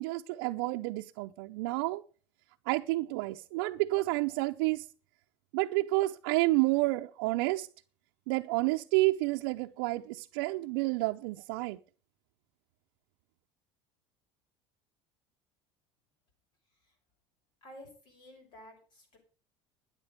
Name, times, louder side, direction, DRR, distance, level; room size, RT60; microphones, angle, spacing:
voice 1, 0.0-2.0 2.7-4.9 5.5-7.7 8.3-11.8, right 20 dB, 90° right, 0.6 m, -30 dB
voice 2, 17.6-19.2, equal, 40° left, 5.9 m, -53 dB
12.5 x 9.8 x 5.3 m
cardioid pair, 160°, 12 cm